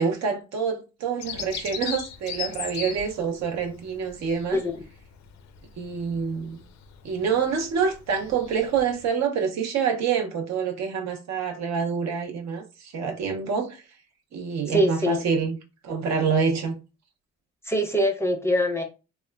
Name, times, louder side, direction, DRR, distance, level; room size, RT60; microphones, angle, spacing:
voice 1, 0.0-4.6 5.8-6.6 7.0-13.8 14.3-15.6 15.8-16.8, right 6 dB, 60° right, 0.6 m, -26 dB
Bird vocalization bird call bird song, 1.2-9.1, left 8 dB, 65° left, 0.5 m, -39 dB
voice 2, 14.7-15.2 17.6-18.8, equal, 10° left, 0.5 m, -23 dB
2.9 x 2.1 x 2.2 m
cardioid pair, 90°, 30 cm